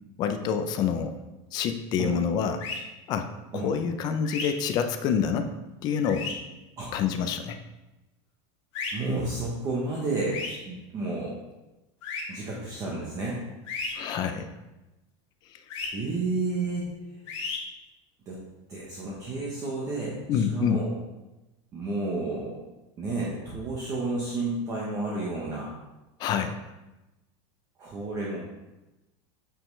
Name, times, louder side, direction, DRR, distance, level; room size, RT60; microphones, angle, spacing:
voice 1, 0.2-1.1 1.5-2.7 3.1-5.5 5.8-6.3 6.9-7.6 13.9-14.5 15.5-15.6 20.3-20.8 26.2-26.6, left 7 dB, 30° left, 8 dB, 0.4 m, -27 dB
sound 1, 2.6-2.8 4.2-4.5 6.0-6.3 8.7-8.9 10.3-10.6 12.0-12.2 13.7-13.9 15.7-15.9 17.3-17.6, left 4 dB, 85° left, 1.7 m, -33 dB
voice 2, 8.9-11.3 12.3-13.4 15.9-16.9 18.3-18.4 18.7-20.2 20.5-20.9 21.7-22.6 23.0-25.7 27.8-28.4, right 2 dB, 20° right, -5 dB, 0.9 m, -31 dB
8.6 x 5.3 x 3.2 m, 1.0 s
supercardioid pair, 180°, 15 cm